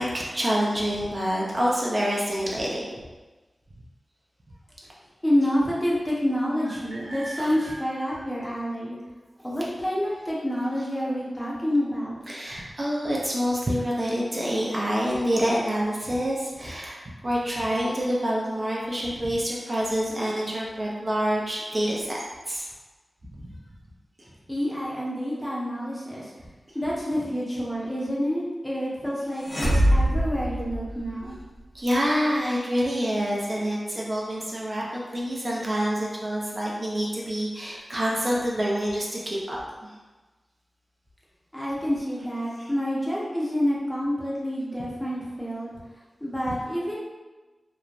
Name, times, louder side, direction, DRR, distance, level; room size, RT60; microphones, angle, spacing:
voice 1, 0.0-2.8 5.4-5.5 6.7-8.2 12.3-22.2 22.5-22.6 23.3-23.5 26.8-26.9 31.7-39.9 42.6-42.7 46.5-46.6, equal, 40° right, -4 dB, 0.5 m, -27 dB
voice 2, 5.2-9.0 9.4-12.2 24.5-26.3 26.7-31.4 41.5-45.7 46.2-47.0, equal, 15° left, -6 dB, 0.8 m, -28 dB
sound 1, 29.4-31.4, equal, 35° left, 1.3 m, -23 dB
3.0 x 2.1 x 2.4 m, 1.2 s
cardioid pair, 55°, 0 cm